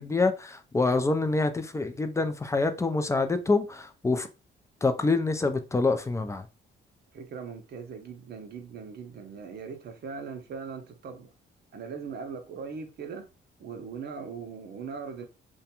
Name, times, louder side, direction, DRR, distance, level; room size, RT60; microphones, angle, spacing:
voice 1, 0.0-4.3 4.8-6.5, left 3 dB, 15° left, 0.3 m, -26 dB
voice 2, 7.1-11.3 11.7-13.3 13.6-15.3, right 5 dB, 55° right, 0.6 m, -40 dB
2.4 x 2.2 x 2.8 m
cardioid pair, 90°, 20 cm